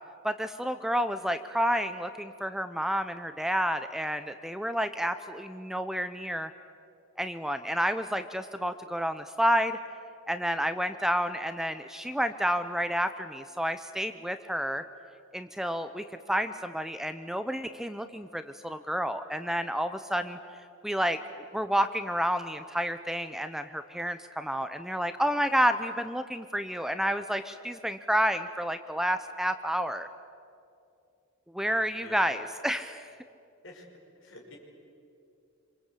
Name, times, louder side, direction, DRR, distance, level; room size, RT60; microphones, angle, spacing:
voice 1, 0.2-6.5 7.2-9.8 10.3-14.8 15.3-20.4 20.8-21.2 21.5-30.1 31.5-33.1, equal, ahead, 9 dB, 0.6 m, -30 dB
voice 2, 31.6-32.4 33.6-33.8 34.2-34.6, left 1 dB, 60° left, 0 dB, 5.7 m, -49 dB
26.5 x 26.0 x 8.4 m, 2.6 s
head